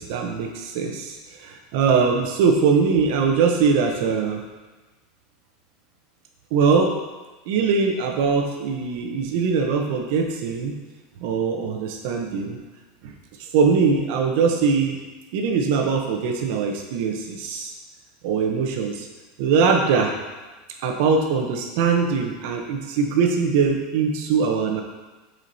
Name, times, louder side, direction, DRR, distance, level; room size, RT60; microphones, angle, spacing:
voice 1, 0.0-4.4 6.5-7.0 7.5-10.8 11.2-12.6 13.0-13.1 13.4-15.0 15.3-17.7 18.2-19.1 19.4-20.1 20.8-24.8, right 5 dB, 60° right, 3 dB, 0.7 m, -21 dB
7.8 x 4.4 x 2.7 m, 1.2 s
supercardioid pair, 170°, 0 cm